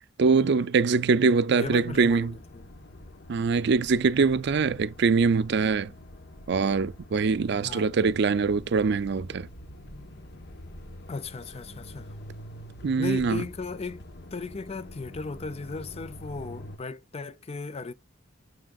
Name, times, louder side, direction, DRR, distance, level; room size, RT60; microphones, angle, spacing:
voice 1, 0.2-2.3 3.3-5.9 6.5-9.5 12.8-13.4, right 4 dB, 60° right, 0.5 m, -23 dB
voice 2, 1.5-2.7 7.6-7.9 11.1-12.1 13.0-14.0 14.3-17.9, left 4 dB, 30° left, 0.5 m, -36 dB
sound 1, 1.6-16.8, left 1 dB, 60° left, 1.2 m, -46 dB
7.5 x 6.1 x 2.4 m
head